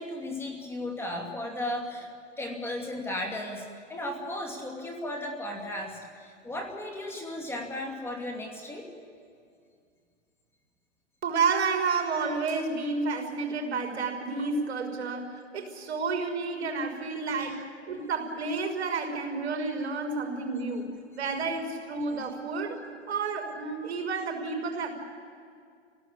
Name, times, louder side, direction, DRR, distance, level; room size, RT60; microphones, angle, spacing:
voice 1, 0.0-2.1 2.4-8.9 17.4-17.6, left 1 dB, 5° left, 2 dB, 2.6 m, -35 dB
voice 2, 11.2-20.9 21.2-24.9, right 4 dB, 60° right, 2 dB, 5.8 m, -30 dB
27.5 x 18.0 x 8.8 m, 2.2 s
hypercardioid pair, 145°, 37 cm